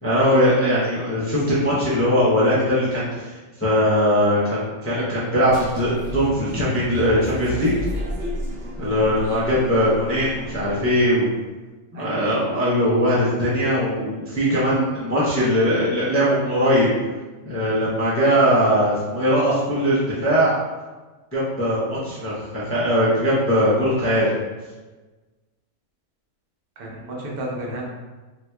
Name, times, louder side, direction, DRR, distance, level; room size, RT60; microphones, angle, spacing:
voice 1, 0.0-7.7 8.8-11.3 11.9-16.9 17.4-20.5 21.3-24.3, equal, 15° left, -9 dB, 0.4 m, -20 dB
sound 1, 5.5-11.0, equal, 60° right, 1.0 m, -32 dB
voice 2, 11.9-12.2 26.8-27.8, right 1 dB, 75° right, -3 dB, 1.2 m, -32 dB
3.6 x 3.0 x 2.2 m, 1.2 s
omnidirectional pair, 1.6 m